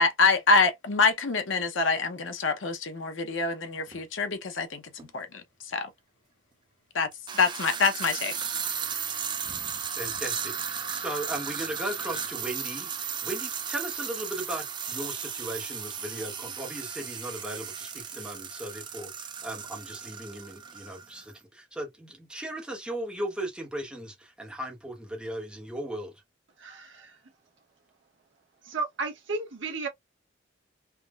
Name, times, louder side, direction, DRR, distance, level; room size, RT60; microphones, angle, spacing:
voice 1, 0.0-4.8 5.1-5.9 6.9-7.1 7.3-8.3, left 4 dB, 70° left, 0.7 m, -25 dB
sound 1, 3.9-4.0 5.0-5.1 7.1-21.2, right 7 dB, 25° right, 0.4 m, -35 dB
voice 2, 9.9-26.1, right 1 dB, 5° right, 0.8 m, -37 dB
voice 3, 26.6-27.0 28.7-29.9, right 3 dB, 65° right, 0.9 m, -33 dB
3.5 x 2.1 x 2.3 m
head